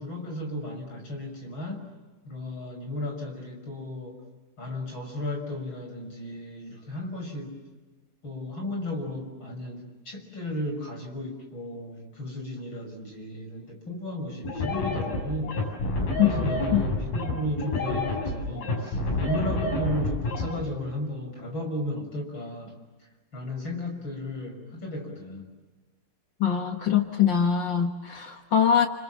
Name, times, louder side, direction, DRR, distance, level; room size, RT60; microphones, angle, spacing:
voice 1, 0.0-1.9 2.3-4.2 4.6-7.6 8.2-15.6 16.1-22.8 23.3-25.5, left 1 dB, 35° left, 3 dB, 6.5 m, -34 dB
sound 1, 14.5-20.5, left 2 dB, 90° left, 9.3 m, -28 dB
voice 2, 26.4-28.9, left 8 dB, 65° left, 5 dB, 1.1 m, -23 dB
29.5 x 27.5 x 7.4 m, 1.2 s
omnidirectional pair, 4.1 m